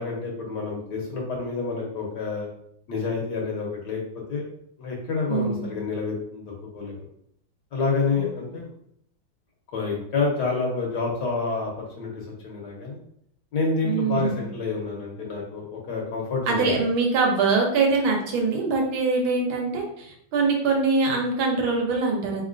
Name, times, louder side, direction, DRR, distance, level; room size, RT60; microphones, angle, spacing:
voice 1, 0.0-2.5 2.9-4.0 4.3-4.4 4.8-6.9 7.7-8.7 9.7-11.7 12.0-13.0 13.5-16.7, left 4 dB, 60° left, -1 dB, 1.3 m, -28 dB
voice 2, 5.3-5.7 8.2-8.3 13.8-14.4 16.5-22.4, right 4 dB, 75° right, 1 dB, 1.6 m, -23 dB
4.1 x 3.6 x 2.5 m, 0.70 s
omnidirectional pair, 2.3 m